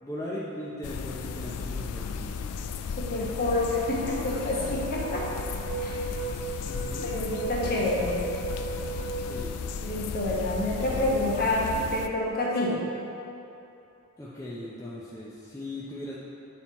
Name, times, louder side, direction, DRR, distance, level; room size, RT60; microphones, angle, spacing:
voice 1, 0.0-2.3 4.6-4.7 6.6-7.1 9.2-9.6 14.2-16.2, left 1 dB, 15° left, -7 dB, 0.6 m, -38 dB
sound 1, 0.8-12.1, left 5 dB, 90° left, 0.4 m, -35 dB
voice 2, 3.0-5.3 5.8-5.9 7.0-8.2 9.8-12.8, left 1 dB, 45° left, -5 dB, 1.4 m, -28 dB
sound 2, 3.5-9.5, right 5 dB, 55° right, 0.4 m, -37 dB
9.3 x 4.4 x 4.2 m, 2.9 s
head